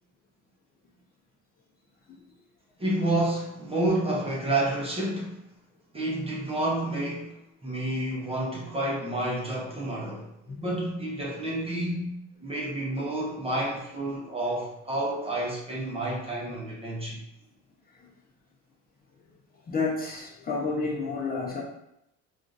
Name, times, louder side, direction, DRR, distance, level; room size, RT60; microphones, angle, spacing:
voice 1, 2.8-5.4 5.9-7.4 7.6-12.2 12.4-17.2, right 1 dB, 15° right, -3 dB, 0.8 m, -29 dB
voice 2, 19.7-21.6, left 4 dB, 25° left, -4 dB, 0.7 m, -30 dB
3.7 x 2.5 x 2.4 m, 0.79 s
supercardioid pair, 100°, 34 cm